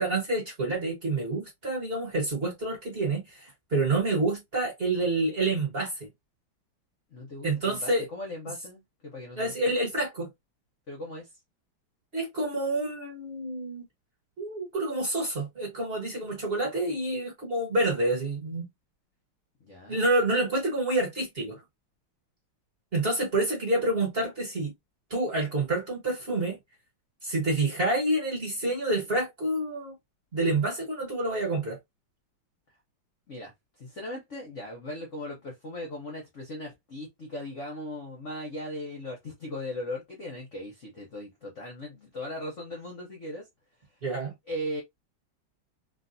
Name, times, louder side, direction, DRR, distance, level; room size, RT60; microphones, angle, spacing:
voice 1, 0.0-6.1 7.4-8.1 9.4-10.3 12.1-13.8 14.4-18.6 19.9-21.6 22.9-24.7 25.1-26.6 27.2-30.0 30.3-31.8 44.0-44.3, right 2 dB, 35° right, 1.0 m, -28 dB
voice 2, 7.1-9.8 10.9-11.3 19.6-20.1 33.3-43.5 44.5-44.8, left 1 dB, 55° left, 0.8 m, -38 dB
3.3 x 2.6 x 2.6 m
omnidirectional pair, 2.2 m